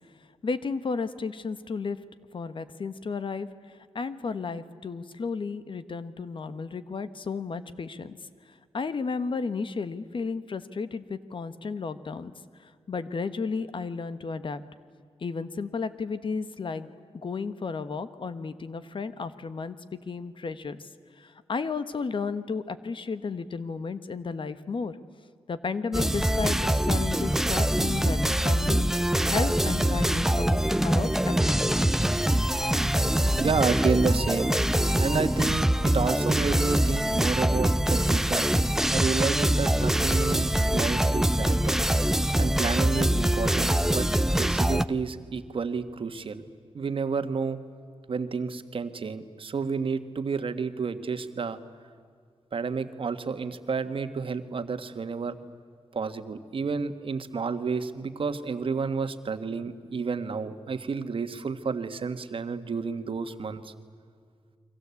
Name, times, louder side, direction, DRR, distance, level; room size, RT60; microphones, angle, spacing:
voice 1, 0.4-2.0 2.3-8.2 8.7-12.3 12.6-14.6 15.2-20.9 21.2-25.0 25.5-31.9, left 4 dB, 55° left, 12 dB, 1.3 m, -33 dB
sound 1, 25.9-44.9, right 1 dB, 5° right, 0.6 m, -24 dB
voice 2, 33.4-34.5 35.0-38.5 38.9-41.8 42.4-46.5 46.7-47.6 48.1-51.6 52.5-55.4 55.9-63.7, right 5 dB, 60° right, 9 dB, 1.5 m, -30 dB
30.0 x 23.5 x 8.4 m, 2.1 s
wide cardioid pair, 110°, 10 cm